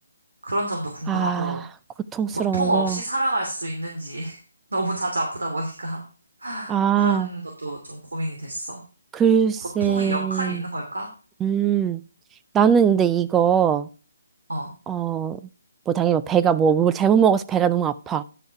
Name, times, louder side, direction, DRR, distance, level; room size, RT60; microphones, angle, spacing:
voice 1, 0.4-1.6 2.3-4.4 4.7-6.0 6.4-8.8 9.8-11.1 14.5-14.7, right 1 dB, 85° right, 2.8 m, -28 dB
voice 2, 1.1-1.6 2.1-3.0 6.7-7.3 9.1-10.6 11.4-12.0 12.5-13.9 14.9-15.4 15.9-18.2, right 8 dB, 10° right, 0.4 m, -21 dB
10.5 x 5.5 x 4.7 m
figure-of-eight pair, 155°, 0 cm